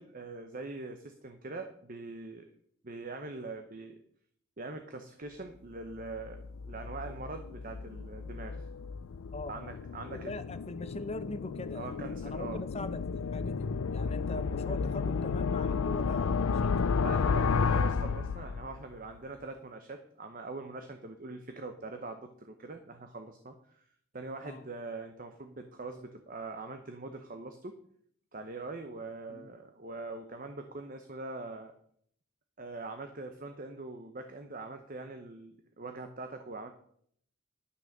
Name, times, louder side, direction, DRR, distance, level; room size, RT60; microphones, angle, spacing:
voice 1, 0.0-2.5 2.8-4.0 4.6-6.4 6.7-8.7 9.5-10.3 11.7-12.6 17.0-23.8 24.1-27.8 28.3-31.7 32.6-36.7, right 3 dB, 40° right, 6 dB, 0.8 m, -43 dB
sound 1, 6.0-18.9, left 5 dB, 85° left, 0.4 m, -32 dB
voice 2, 9.3-9.8 10.1-16.9 24.4-24.6 29.3-29.5, left 2 dB, 30° left, 11 dB, 0.6 m, -42 dB
11.5 x 6.3 x 6.5 m, 0.66 s
head